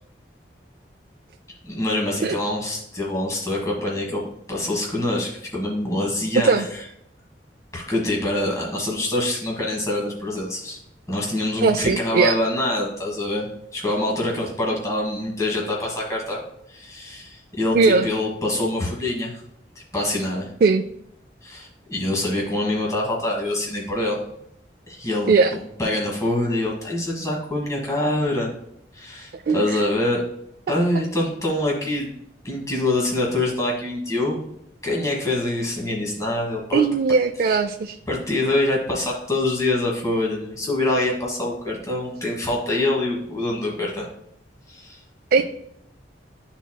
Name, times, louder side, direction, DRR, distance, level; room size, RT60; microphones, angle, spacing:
voice 1, 1.6-4.2 4.5-6.8 7.7-10.8 11.1-16.4 16.7-19.4 19.9-20.5 21.4-24.2 24.9-28.5 28.9-30.2 30.7-32.1 32.4-34.5 34.8-36.9 37.4-37.6 38.1-44.1 44.7-45.0, left 1 dB, 20° left, -2 dB, 1.4 m, -25 dB
voice 2, 11.6-12.4 17.7-18.1 20.6-20.8 25.3-25.5 29.5-29.8 36.7-38.0 45.3-45.4, right 4 dB, 60° right, 5 dB, 0.3 m, -19 dB
11.0 x 4.0 x 2.3 m, 0.75 s
head